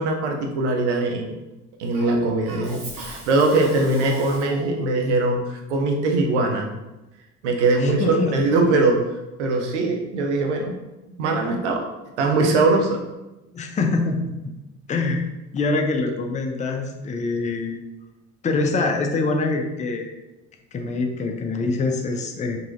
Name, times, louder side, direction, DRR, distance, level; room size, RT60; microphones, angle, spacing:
voice 1, 0.0-1.3 1.8-6.7 7.4-9.0 9.4-10.7 11.2-11.9 12.2-13.0, right 2 dB, 80° right, 2 dB, 0.7 m, -21 dB
Cough, 1.9-4.8, right 2 dB, 40° right, 1.3 m, -38 dB
voice 2, 7.8-8.3 13.5-14.5 14.9-15.2 15.5-17.8 18.4-20.1 20.7-22.6, left 3 dB, 20° left, 3 dB, 0.5 m, -24 dB
3.8 x 2.8 x 2.5 m, 1.0 s
hypercardioid pair, 65°, 34 cm